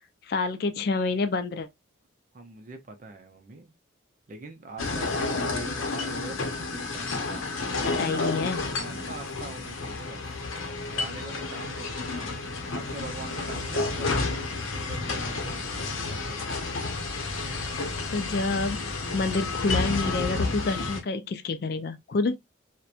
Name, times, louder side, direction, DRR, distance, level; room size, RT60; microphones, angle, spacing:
voice 1, 0.3-1.7 7.9-8.6 18.1-22.3, left 3 dB, 50° left, 0.3 m, -28 dB
voice 2, 2.3-3.7 4.3-7.4 7.8-8.3 8.8-10.2 10.8-12.3 12.7-16.6, right 3 dB, 40° right, 0.5 m, -43 dB
sound 1, 4.8-21.0, left 3 dB, 85° left, 0.7 m, -31 dB
2.8 x 2.1 x 2.3 m
head